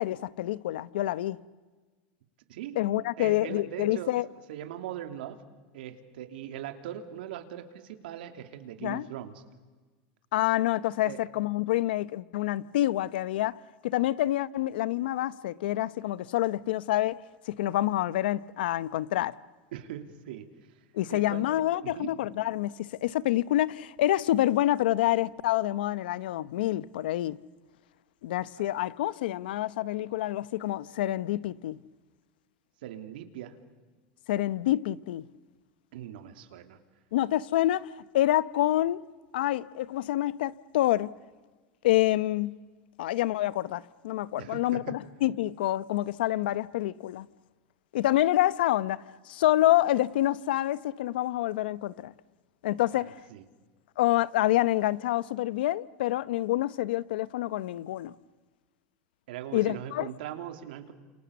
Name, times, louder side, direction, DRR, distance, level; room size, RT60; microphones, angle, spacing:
voice 1, 0.0-1.4 2.8-4.3 8.8-9.1 10.3-13.6 13.8-17.2 17.5-19.3 20.9-27.4 28.2-31.8 34.3-35.3 37.1-39.0 39.3-41.2 41.8-42.6 43.0-47.3 47.9-52.1 52.6-53.1 54.0-58.1 59.5-60.1, left 14 dB, 85° left, 0.8 m, -27 dB
voice 2, 2.5-2.8 3.2-4.2 4.5-5.4 5.7-9.4 11.0-11.2 19.7-20.5 21.1-21.5 21.8-22.1 32.8-33.6 35.9-36.8 44.4-45.0 52.9-53.4 59.3-60.9, right 11 dB, 80° right, 2.9 m, -40 dB
29.5 x 28.0 x 7.1 m
supercardioid pair, 135°, 5 cm